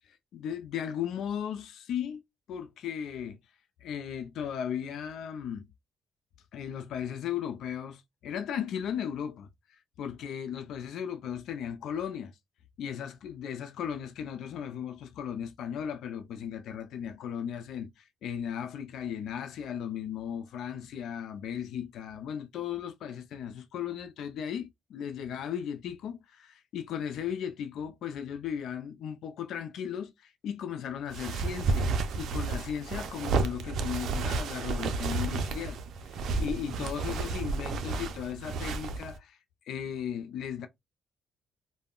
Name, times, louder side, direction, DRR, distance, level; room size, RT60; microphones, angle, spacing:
voice 1, 0.1-2.2 2.5-3.4 3.8-5.7 6.5-9.5 10.0-12.3 12.8-35.8 36.1-39.4 39.7-40.7, left 8 dB, 75° left, 0.4 m, -36 dB
sound 1, 31.1-39.2, right 4 dB, 75° right, 0.4 m, -31 dB
2.3 x 2.1 x 3.5 m
cardioid pair, 90°, 0 cm